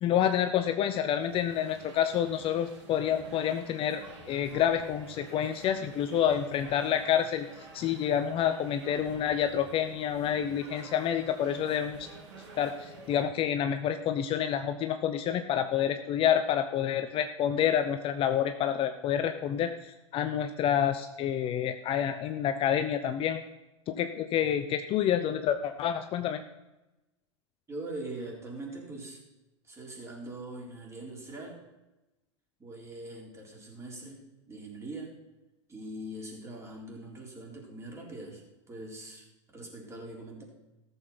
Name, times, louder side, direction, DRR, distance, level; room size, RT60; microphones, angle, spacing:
voice 1, 0.0-7.5 7.7-12.0 12.6-23.4 23.9-26.4, left 9 dB, 35° left, 8 dB, 0.7 m, -28 dB
sound 1, 1.2-13.2, right 3 dB, 65° right, 3.5 m, -50 dB
voice 2, 27.7-29.2 29.6-31.6 32.6-35.2 35.7-40.4, right 2 dB, 15° right, -1 dB, 3.9 m, -42 dB
14.0 x 7.2 x 5.8 m, 1.0 s
hypercardioid pair, 95°, 16 cm